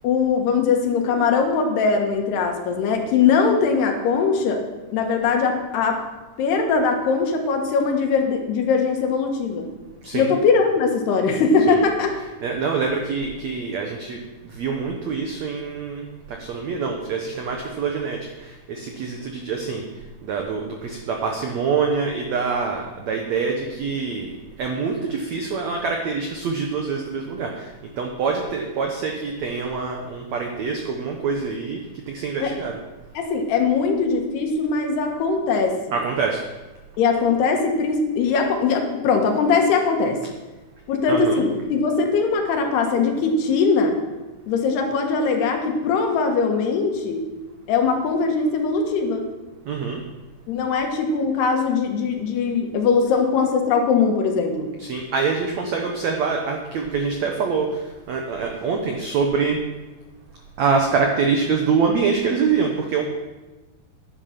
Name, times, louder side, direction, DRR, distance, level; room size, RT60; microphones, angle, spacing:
voice 1, 0.0-4.6 4.9-6.0 6.4-9.7 10.1-12.1 32.4-32.5 33.2-35.8 37.0-40.2 40.9-44.0 44.5-47.2 47.7-49.3 50.5-54.7, left 5 dB, 80° left, 3 dB, 3.5 m, -21 dB
voice 2, 12.4-19.8 20.2-24.3 24.6-32.8 35.9-36.4 41.1-41.4 49.7-50.0 54.8-59.6 60.6-63.0, right 5 dB, 80° right, 2 dB, 1.6 m, -25 dB
10.5 x 10.5 x 5.8 m, 1.2 s
omnidirectional pair, 4.6 m